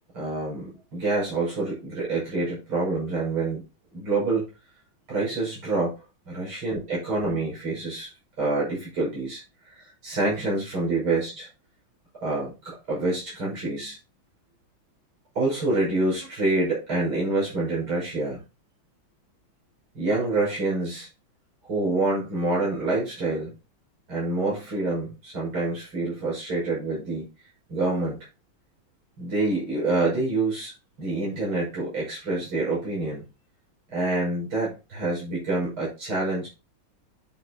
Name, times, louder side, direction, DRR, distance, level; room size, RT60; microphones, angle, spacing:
voice 1, 0.1-3.6 3.9-4.5 5.1-5.9 6.3-8.1 8.4-11.4 12.2-14.0 15.3-18.4 19.9-21.1 21.6-23.5 24.1-27.3 27.7-28.2 29.2-30.7 31.0-33.2 33.9-36.5, right 2 dB, 80° right, -5 dB, 6.7 m, -27 dB
11.0 x 6.3 x 2.9 m, 0.29 s
omnidirectional pair, 2.3 m